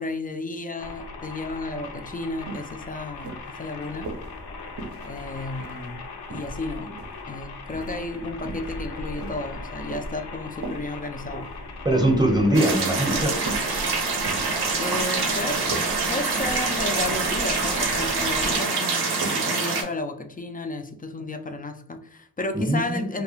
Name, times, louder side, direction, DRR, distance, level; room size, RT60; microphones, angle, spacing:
voice 1, 0.0-4.2 5.0-7.0 7.3-11.5 14.8-23.2, left 2 dB, 25° left, 0.3 m, -33 dB
sound 1, 0.8-18.6, left 3 dB, 75° left, 0.5 m, -38 dB
sound 2, 2.0-2.1 2.5-2.7 3.2-4.3 4.8-5.9 6.3-7.2 7.7-8.0 8.4-8.7 9.2-10.2 10.6-10.9 11.3-11.6 12.0-12.2 12.7-13.0 13.5-13.7 14.1-14.5 14.9-15.2 15.5-15.9 16.4-16.7 17.1-17.3 17.8-18.0 18.3-18.7 19.2-19.4 19.8-19.9, right 3 dB, 50° right, 0.5 m, -37 dB
voice 2, 11.8-13.3 22.5-23.1, right 1 dB, 10° right, 0.8 m, -21 dB
sound 3, 12.5-19.8, right 4 dB, 85° right, 0.7 m, -25 dB
2.3 x 2.3 x 3.0 m
cardioid pair, 50°, 38 cm